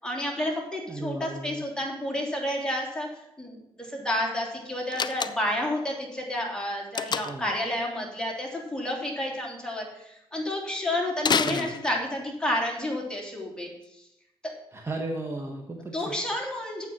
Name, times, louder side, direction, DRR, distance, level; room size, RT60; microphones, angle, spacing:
voice 1, 0.0-14.0 15.9-16.9, left 1 dB, 10° left, -1 dB, 3.2 m, -30 dB
voice 2, 0.9-1.6 7.2-7.4 11.4-11.7 14.7-16.2, right 2 dB, 25° right, 1 dB, 1.4 m, -35 dB
Slam, 4.9-5.7 6.9-7.5 11.2-12.3, left 6 dB, 45° left, 0.5 m, -28 dB
9.2 x 7.7 x 6.1 m, 0.82 s
cardioid pair, 90°, 10 cm